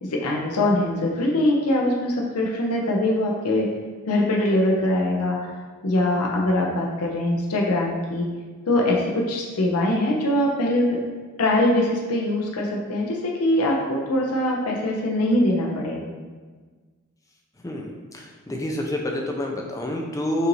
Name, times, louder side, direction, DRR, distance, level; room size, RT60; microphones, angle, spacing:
voice 1, 0.0-3.7 4.1-5.4 5.8-8.3 8.7-11.0 11.4-16.0, left 1 dB, 90° left, -1 dB, 0.6 m, -22 dB
voice 2, 17.6-20.5, left 1 dB, 15° left, 0 dB, 0.5 m, -28 dB
5.5 x 2.6 x 3.1 m, 1.4 s
head